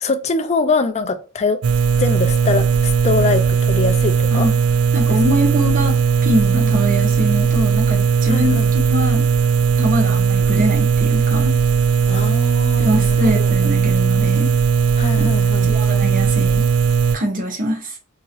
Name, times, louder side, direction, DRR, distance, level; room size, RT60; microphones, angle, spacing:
voice 1, 0.0-1.6 2.0-4.5 5.1-5.2 6.5-6.8 8.3-8.7 9.8-10.0 12.1-13.5 15.0-15.7, left 4 dB, 30° left, 0.4 m, -23 dB
sound 1, 1.6-17.2, right 6 dB, 85° right, 0.3 m, -17 dB
voice 2, 4.9-6.0 6.2-9.2 9.8-11.5 12.8-14.5 15.2-15.3 15.6-16.6 17.1-17.9, equal, 40° right, 1.0 m, -22 dB
2.9 x 2.8 x 2.4 m
head